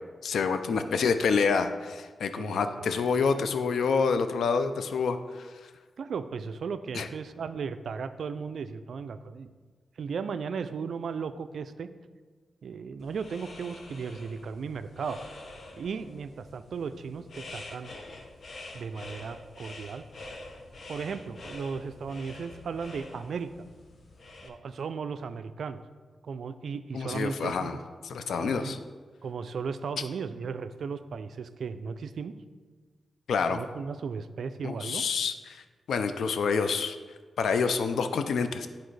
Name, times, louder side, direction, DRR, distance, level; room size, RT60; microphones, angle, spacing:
voice 1, 0.2-5.5 6.9-7.1 26.9-27.8 28.0-28.8 33.3-33.6 34.6-37.0 37.4-38.7, left 5 dB, 80° left, 9 dB, 0.4 m, -27 dB
voice 2, 2.4-2.9 6.0-9.5 10.0-11.9 12.6-15.2 15.8-17.9 18.7-20.1 20.9-23.5 24.4-25.8 26.2-27.8 28.4-28.8 29.2-32.3 33.5-35.0, right 5 dB, 70° right, 11 dB, 0.3 m, -36 dB
sound 1, 13.0-24.5, left 2 dB, 60° left, 0.8 m, -46 dB
10.0 x 4.2 x 3.2 m, 1.5 s
cardioid pair, 80°, 0 cm